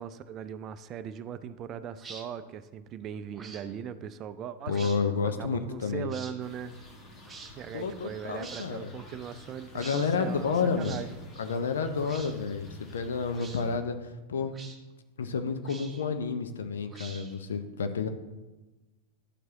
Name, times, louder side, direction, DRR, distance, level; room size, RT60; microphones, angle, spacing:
voice 1, 0.0-4.9 5.2-6.8 7.5-11.2, right 8 dB, 30° right, 13 dB, 0.4 m, -39 dB
sound 1, 2.0-2.2 3.3-3.6 4.6-5.0 6.1-6.3 7.2-7.5 8.4-8.7 9.7-10.1 10.8-11.0 12.0-12.3 13.3-13.6 14.5-14.8 15.6-16.1 16.9-17.4, right 4 dB, 15° right, 0.8 m, -46 dB
voice 2, 4.7-6.1 7.7-8.9 9.7-11.0 11.4-14.5 15.2-18.1, left 5 dB, 65° left, 8 dB, 0.6 m, -30 dB
sound 2, 6.4-13.8, left 2 dB, 30° left, 1.4 m, -50 dB
11.5 x 4.6 x 2.9 m, 1.1 s
figure-of-eight pair, 90°, 0 cm